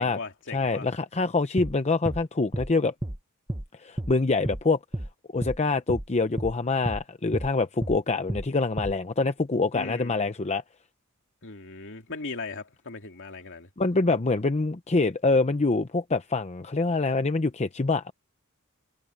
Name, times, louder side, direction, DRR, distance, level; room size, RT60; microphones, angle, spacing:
voice 1, 0.0-0.9 9.7-10.3 11.4-13.7, left 3 dB, 60° left, 2.8 m, -38 dB
voice 2, 0.5-2.9 3.8-4.8 5.3-10.6 13.8-18.1, left 3 dB, 30° left, 0.7 m, -25 dB
sound 1, 1.6-1.7 2.1-2.2 2.5-2.7 3.0-3.2 3.5-3.7 4.0-4.1 4.4-4.6 4.9-5.1 5.4-5.6 5.9-6.1 6.4-6.5 6.9-7.0 7.3-7.5 7.8-8.0 8.3-8.5 8.8-8.9, right 1 dB, 15° right, 1.1 m, -31 dB
head